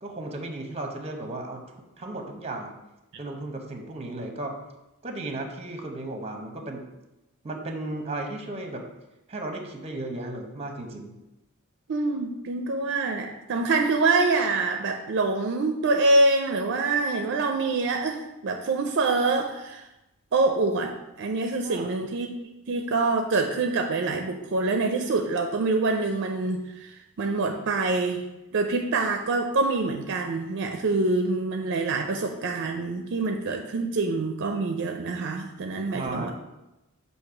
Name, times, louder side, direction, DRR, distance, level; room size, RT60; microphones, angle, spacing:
voice 1, 0.0-2.7 3.2-4.5 5.0-6.9 7.4-8.8 9.3-11.1 21.6-21.9 35.9-36.3, right 2 dB, 30° right, 4 dB, 0.8 m, -35 dB
voice 2, 11.9-19.8 20.3-22.3 22.7-28.2 28.5-36.3, right 3 dB, 55° right, 4 dB, 0.5 m, -25 dB
6.5 x 2.8 x 5.6 m, 0.96 s
head